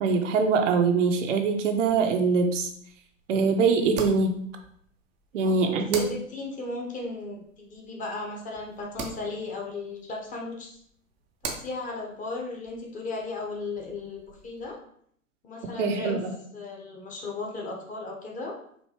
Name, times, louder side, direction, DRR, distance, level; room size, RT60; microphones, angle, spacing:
voice 1, 0.0-2.7 3.3-4.4 5.3-6.0 15.8-16.3, right 4 dB, 65° right, 3 dB, 0.6 m, -23 dB
sound 1, 1.8-14.7, right 4 dB, 20° right, 0.4 m, -44 dB
voice 2, 5.3-10.8 11.4-14.8 15.4-16.2 16.5-18.6, left 3 dB, 20° left, -1 dB, 0.8 m, -36 dB
4.5 x 2.6 x 2.8 m, 0.65 s
hypercardioid pair, 105°, 41 cm